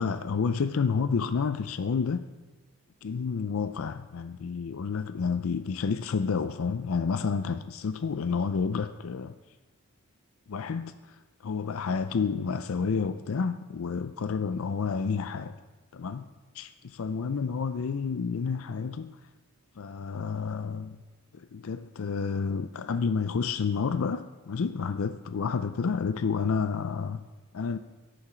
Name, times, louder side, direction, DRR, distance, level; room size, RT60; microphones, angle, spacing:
voice 1, 0.0-2.2 3.0-9.3 10.5-15.6 15.9-16.3 16.5-19.2 19.8-21.0 21.3-27.2 27.5-27.8, left 5 dB, 65° left, 11 dB, 0.4 m, -30 dB
14.0 x 10.5 x 4.4 m, 1.2 s
head